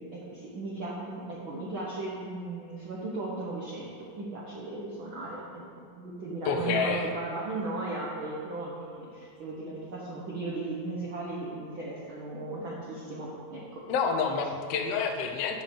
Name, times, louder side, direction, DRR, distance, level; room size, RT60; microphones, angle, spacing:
voice 1, 0.0-5.6 6.0-13.8, right 2 dB, 85° right, -5 dB, 1.1 m, -36 dB
voice 2, 6.4-7.1 13.9-15.6, left 5 dB, 80° left, 3 dB, 1.4 m, -28 dB
9.3 x 5.3 x 7.0 m, 2.4 s
omnidirectional pair, 4.0 m